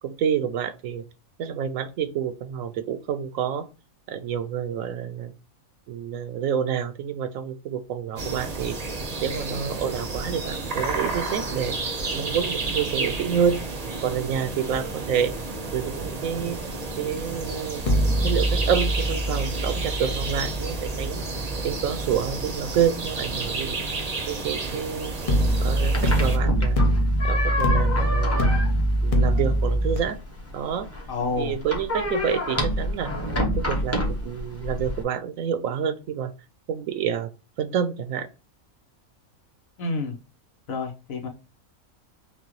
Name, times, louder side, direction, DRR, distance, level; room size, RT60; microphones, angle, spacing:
voice 1, 0.0-1.0 1.4-3.7 4.1-5.3 5.9-8.8 9.2-11.8 12.1-13.6 14.0-15.3 15.7-16.6 17.0-17.8 18.2-21.2 21.6-23.8 24.3-25.1 25.6-26.8 27.2-28.5 29.0-30.2 30.5-30.9 31.4-33.1 33.6-36.3 36.7-37.3 37.6-38.3, right 8 dB, 75° right, 11 dB, 1.0 m, -28 dB
sound 1, 8.2-26.4, right 3 dB, 35° right, 0.7 m, -31 dB
sound 2, 17.8-22.9 25.3-30.0, right 1 dB, 40° left, 0.5 m, -24 dB
sound 3, 25.5-35.0, left 1 dB, 10° left, 0.9 m, -29 dB
voice 2, 31.1-31.6 39.8-40.2 40.7-41.3, left 3 dB, 75° left, 2 dB, 1.4 m, -29 dB
6.0 x 2.3 x 3.0 m, 0.30 s
omnidirectional pair, 1.5 m